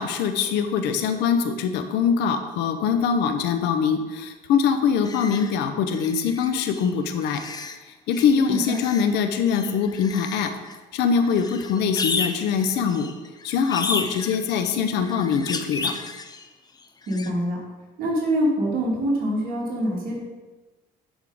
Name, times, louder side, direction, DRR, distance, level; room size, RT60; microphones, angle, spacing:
voice 1, 0.0-7.4 8.1-10.5 10.9-13.1 13.4-15.9, left 6 dB, 85° left, 8 dB, 0.8 m, -23 dB
sound 1, 5.0-5.5 5.9-6.9 7.2-7.8 8.1-9.1 9.4-10.8 11.1-16.5 16.8-17.3, left 4 dB, 25° left, 0.6 m, -33 dB
voice 2, 17.1-17.6 18.0-20.2, equal, 60° right, -4 dB, 2.6 m, -24 dB
11.0 x 3.7 x 4.9 m, 1.2 s
cardioid pair, 110°, 17 cm